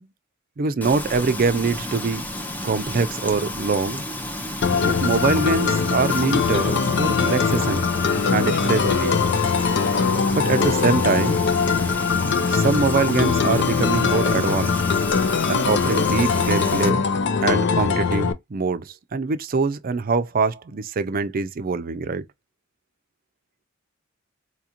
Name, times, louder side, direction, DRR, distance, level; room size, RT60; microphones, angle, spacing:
voice 1, 0.6-2.2 2.6-4.0 4.8-7.9 8.3-9.1 10.3-11.4 12.5-14.8 15.5-17.1 17.4-22.2, right 4 dB, 45° right, 0.4 m, -23 dB
Frying (food), 0.8-16.9, left 1 dB, 10° left, 0.5 m, -32 dB
sound 1, 4.6-18.3, left 5 dB, 60° left, 0.5 m, -21 dB
4.3 x 2.5 x 2.8 m
head